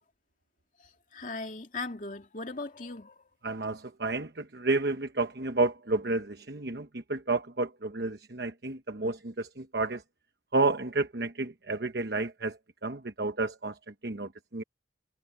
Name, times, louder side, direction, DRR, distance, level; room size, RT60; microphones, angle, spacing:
voice 1, 0.8-3.2, left 3 dB, 45° left, 2.6 m, -39 dB
voice 2, 3.4-10.0 10.5-14.6, right 3 dB, 60° right, 1.1 m, -31 dB
head